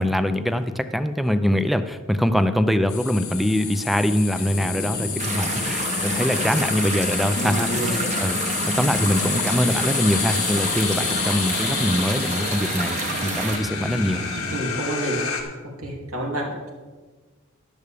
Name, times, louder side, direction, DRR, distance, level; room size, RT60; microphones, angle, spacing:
voice 1, 0.0-8.4 8.6-14.2, equal, ahead, 10 dB, 0.4 m, -23 dB
sound 1, 2.9-15.4, left 8 dB, 90° left, 1.6 m, -29 dB
sound 2, 4.3-14.6, right 1 dB, 55° right, 1.0 m, -32 dB
sound 3, 5.2-13.6, right 4 dB, 35° right, 1.3 m, -29 dB
voice 2, 5.9-6.6 7.3-8.0 14.5-15.2 15.8-16.7, right 1 dB, 85° right, -2 dB, 2.9 m, -29 dB
13.0 x 11.0 x 3.5 m, 1.3 s
head